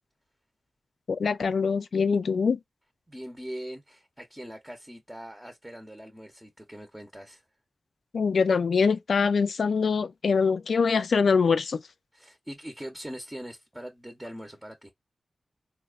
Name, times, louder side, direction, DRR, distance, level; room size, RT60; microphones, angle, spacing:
voice 1, 1.1-2.6 8.1-11.8, left 5 dB, 80° left, 0.4 m, -24 dB
voice 2, 3.1-7.4 12.1-14.9, equal, 10° right, 0.7 m, -41 dB
4.1 x 2.1 x 2.4 m
wide cardioid pair, 100°, 0 cm